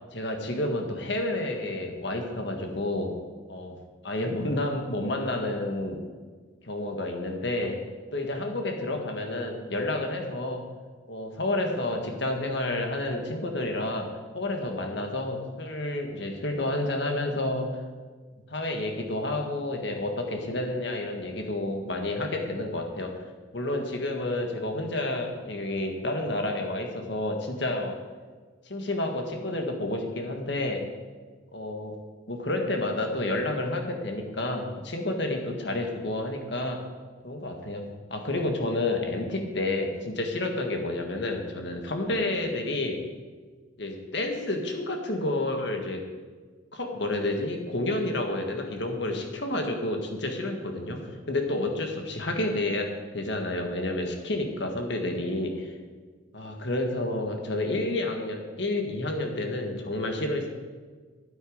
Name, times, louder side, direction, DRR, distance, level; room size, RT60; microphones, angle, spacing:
voice 1, 0.1-3.1 3.5-3.7 4.0-6.0 6.6-7.8 8.1-10.7 11.1-17.7 18.5-23.1 23.5-28.0 28.7-30.9 31.5-31.9 32.3-36.8 37.2-43.0 43.8-46.1 46.7-55.7 56.3-60.5, left 2 dB, 60° left, 3 dB, 1.6 m, -30 dB
12.5 x 9.3 x 5.0 m, 1.5 s
head